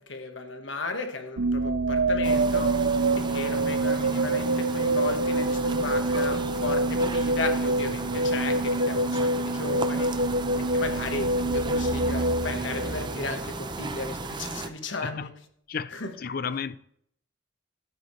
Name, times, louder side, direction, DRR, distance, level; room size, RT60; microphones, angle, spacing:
voice 1, 0.0-2.9 3.1-15.3 15.9-16.2, left 3 dB, 70° left, 1.4 m, -35 dB
sound 1, 1.4-13.4, right 2 dB, 70° right, 0.7 m, -26 dB
sound 2, 2.2-14.7, right 3 dB, 25° right, 0.6 m, -35 dB
voice 2, 15.7-16.8, left 6 dB, 50° left, 0.5 m, -33 dB
15.5 x 12.5 x 3.2 m
head